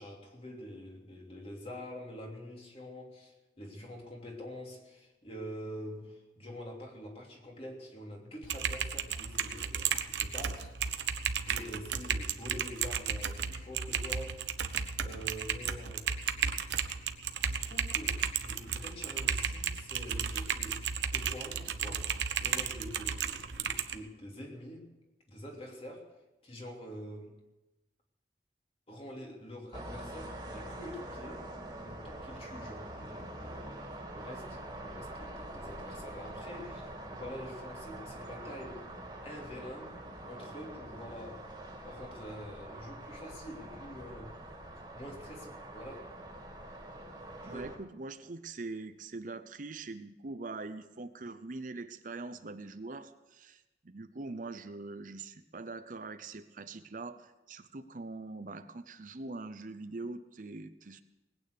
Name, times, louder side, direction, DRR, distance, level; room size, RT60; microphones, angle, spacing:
voice 1, 0.0-11.0 11.4-14.6 15.0-16.6 17.5-24.9 25.3-26.2 26.4-27.3 28.9-31.4 31.8-33.8 34.1-38.9 39.2-39.9 40.2-41.4 41.8-44.4 44.9-46.1 47.4-47.7, equal, 35° left, 0 dB, 3.0 m, -46 dB
Typing, 8.4-24.0, right 7 dB, 90° right, 0.9 m, -34 dB
sound 1, 29.7-47.8, right 1 dB, 25° right, 2.6 m, -45 dB
voice 2, 47.5-61.0, right 3 dB, 50° right, 10 dB, 0.7 m, -43 dB
20.0 x 9.2 x 6.7 m, 1.0 s
head